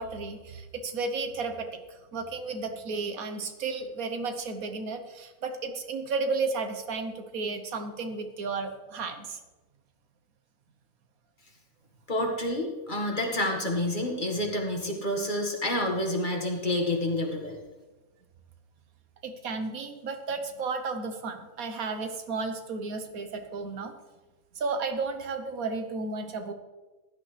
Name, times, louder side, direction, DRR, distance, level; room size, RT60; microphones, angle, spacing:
voice 1, 0.0-9.4 19.2-23.9 24.5-26.5, right 4 dB, 80° right, 7 dB, 1.5 m, -33 dB
voice 2, 12.1-17.6, left 1 dB, 35° left, 1 dB, 1.9 m, -28 dB
15.5 x 11.0 x 3.3 m, 1.2 s
omnidirectional pair, 1.5 m